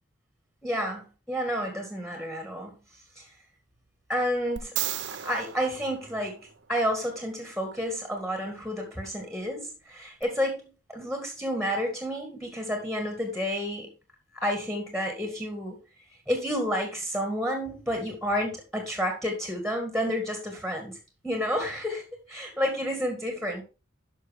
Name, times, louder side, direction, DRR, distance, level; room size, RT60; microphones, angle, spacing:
voice 1, 0.6-2.7 3.2-3.3 4.1-4.8 5.1-13.9 14.3-15.8 16.3-21.0 21.2-22.0 22.3-23.6, equal, ahead, 4 dB, 1.9 m, -30 dB
sound 1, 4.6-6.8 10.2-10.3, right 12 dB, 60° right, 0.7 m, -35 dB
11.0 x 5.8 x 3.6 m, 0.30 s
head